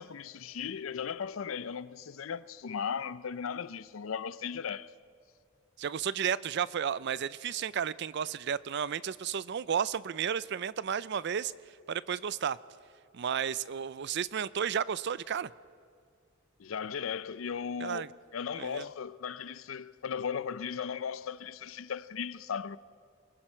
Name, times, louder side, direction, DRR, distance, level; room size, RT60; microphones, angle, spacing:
voice 1, 0.0-4.9 16.6-22.8, left 7 dB, 80° left, 0.5 m, -37 dB
voice 2, 5.8-11.5 11.9-12.6 13.1-15.5 17.8-18.1 18.6-18.9, right 7 dB, 60° right, 0.4 m, -32 dB
28.5 x 20.5 x 4.4 m
head